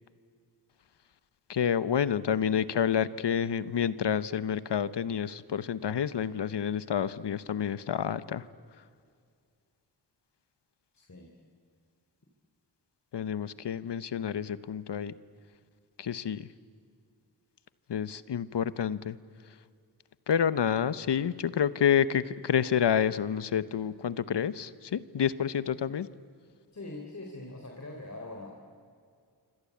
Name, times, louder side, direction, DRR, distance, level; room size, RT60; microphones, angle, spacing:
voice 1, 1.5-8.5 13.1-15.1 16.0-16.5 17.9-19.2 20.3-26.1, left 8 dB, 85° left, 15 dB, 1.0 m, -29 dB
voice 2, 26.7-28.5, left 2 dB, 40° left, 1 dB, 3.7 m, -42 dB
26.5 x 25.5 x 8.5 m, 2.2 s
wide cardioid pair, 70°, 41 cm